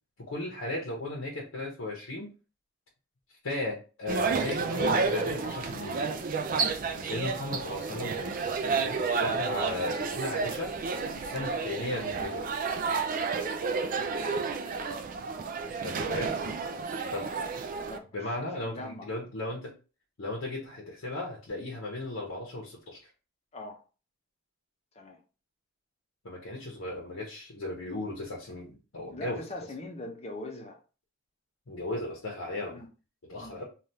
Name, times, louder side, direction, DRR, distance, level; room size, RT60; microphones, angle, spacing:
voice 1, 0.2-2.3 3.4-6.1 6.9-10.7 11.1-12.5 15.8-16.3 17.1-17.3 18.1-19.7 20.2-23.1 26.2-29.4 31.7-32.8 33.3-33.6, left 2 dB, 80° left, 0.8 m, -36 dB
sound 1, 4.1-18.0, right 4 dB, 40° right, 0.3 m, -31 dB
voice 2, 17.8-18.4 18.6-19.1 23.5-23.8 24.9-25.2 29.1-30.8 32.7-32.9 33.4-33.6, left 2 dB, 30° left, 0.6 m, -42 dB
3.3 x 2.3 x 2.7 m
head